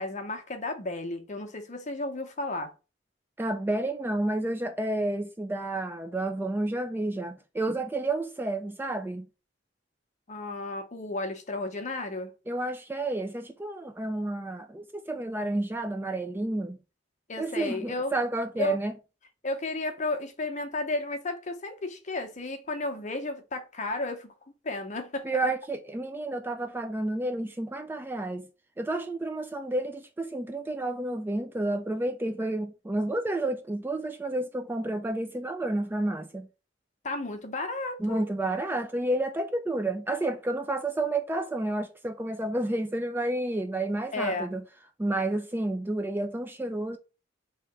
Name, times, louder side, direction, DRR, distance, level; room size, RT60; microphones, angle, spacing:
voice 1, 0.0-2.7 10.3-12.3 17.3-18.1 18.6-18.8 19.4-24.3 24.6-25.5 37.0-38.2 44.1-44.5, left 2 dB, 40° left, 0.7 m, -33 dB
voice 2, 3.4-9.3 12.5-16.8 17.4-18.9 25.2-28.5 28.8-36.5 38.0-44.6 45.0-47.0, right 2 dB, 10° right, 0.3 m, -30 dB
3.2 x 2.8 x 4.6 m
head